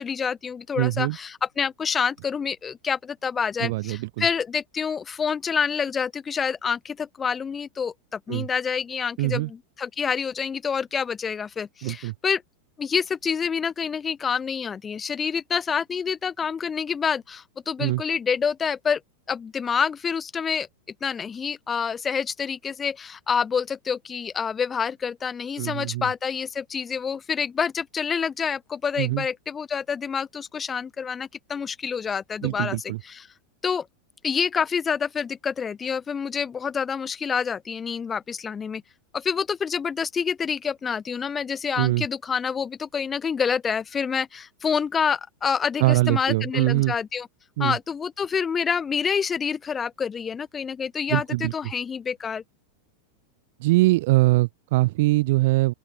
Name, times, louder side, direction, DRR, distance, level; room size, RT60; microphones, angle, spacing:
voice 1, 0.0-12.4 12.8-19.0 19.3-20.7 21.0-32.8 33.0-33.3 33.6-33.9 34.2-38.8 39.1-47.3 47.6-52.4, left 6 dB, 20° left, 2.0 m, -27 dB
voice 2, 0.8-1.2 3.6-4.3 8.3-8.5 9.2-9.5 11.8-12.1 17.8-18.0 25.6-26.1 29.0-29.3 32.4-33.0 41.8-42.0 45.8-46.9 47.6-47.8 51.1-51.5 53.6-55.7, right 20 dB, 50° right, 0.4 m, -22 dB
open air
figure-of-eight pair, 90°, 0 cm